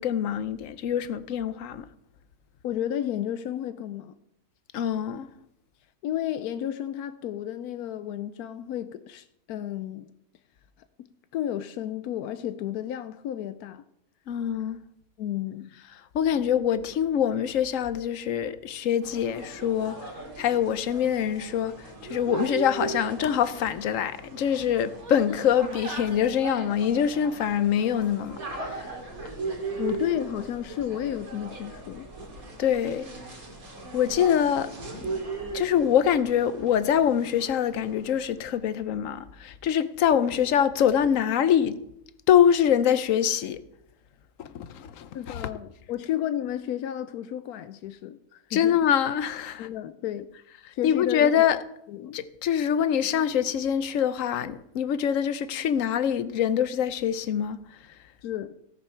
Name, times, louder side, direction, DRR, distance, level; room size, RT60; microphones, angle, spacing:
voice 1, 0.0-1.9 4.7-5.3 14.3-14.8 16.1-20.1 20.4-28.9 32.6-33.1 33.9-34.7 35.5-41.8 42.3-43.6 44.4-45.5 48.5-49.7 50.8-51.6 52.1-57.6, left 9 dB, 65° left, 1.0 m, -24 dB
voice 2, 2.6-4.1 6.0-10.1 11.3-13.8 15.2-15.7 29.8-32.1 45.1-48.8 49.6-50.3 50.7-51.5 51.9-52.2 58.2-58.6, left 11 dB, 90° left, 1.1 m, -32 dB
sound 1, 19.0-38.3, right 3 dB, 70° right, 3.0 m, -38 dB
16.5 x 6.9 x 5.7 m
omnidirectional pair, 1.5 m